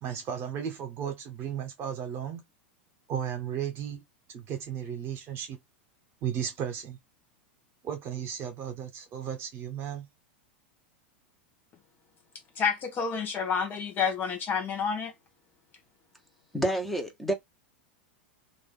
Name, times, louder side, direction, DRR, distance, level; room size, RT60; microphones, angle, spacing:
voice 1, 0.0-2.4 3.1-4.0 4.3-5.6 6.2-7.0 7.8-10.1, right 8 dB, 40° right, 1.4 m, -34 dB
voice 2, 12.6-15.1, left 6 dB, 35° left, 1.0 m, -29 dB
voice 3, 16.5-17.3, right 1 dB, ahead, 1.3 m, -28 dB
2.9 x 2.6 x 3.7 m
hypercardioid pair, 95°, 6 cm